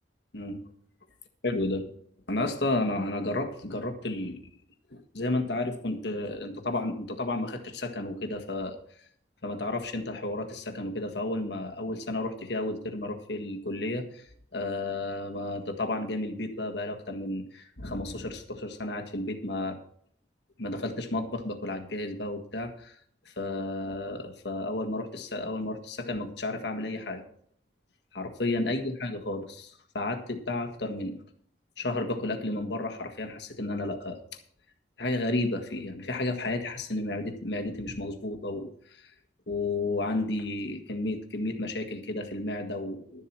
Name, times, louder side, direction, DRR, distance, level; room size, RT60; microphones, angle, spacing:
voice 1, 1.4-1.9 2.3-4.5 4.9-8.8 9.4-14.2 14.5-19.8 20.6-23.0 23.2-27.2 28.1-31.2 31.8-34.2 35.0-38.7 39.0-39.1 39.5-43.2, left 2 dB, 70° left, 4 dB, 1.6 m, -32 dB
12.5 x 7.5 x 6.1 m, 0.63 s
head